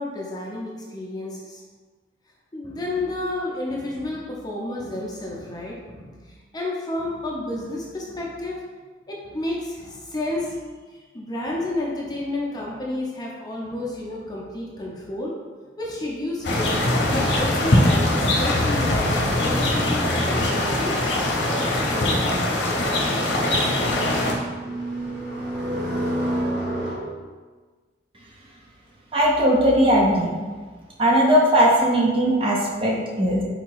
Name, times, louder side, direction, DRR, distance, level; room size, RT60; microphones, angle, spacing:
voice 1, 0.0-1.6 2.5-8.6 9.1-10.6 10.9-15.3 15.8-21.0, left 1 dB, 20° left, -3 dB, 0.6 m, -31 dB
sound 1, 16.4-24.3, left 1 dB, 70° left, 0.8 m, -22 dB
sound 2, 22.8-27.0, right 1 dB, 45° right, 1.1 m, -31 dB
voice 2, 29.1-30.3 31.0-33.4, equal, 30° right, -3 dB, 0.7 m, -18 dB
4.0 x 2.9 x 4.6 m, 1.4 s
head